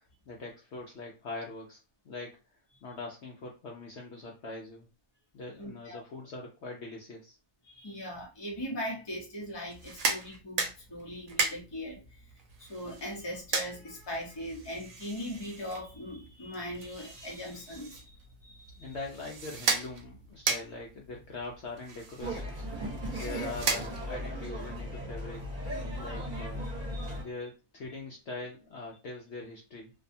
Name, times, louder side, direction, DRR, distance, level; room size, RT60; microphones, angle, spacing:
voice 1, 0.0-2.4 2.8-4.9 5.3-7.4 18.8-22.7 23.1-25.4 26.0-26.7 27.2-29.9, left 3 dB, 65° left, 0.8 m, -42 dB
voice 2, 5.6-6.0 7.6-18.9 26.2-26.3 26.9-27.2, equal, 25° left, 0.7 m, -40 dB
sound 1, 9.7-24.3, right 4 dB, 75° right, 1.0 m, -37 dB
sound 2, 22.2-27.2, equal, 40° right, 1.2 m, -37 dB
2.6 x 2.3 x 2.6 m
omnidirectional pair, 1.5 m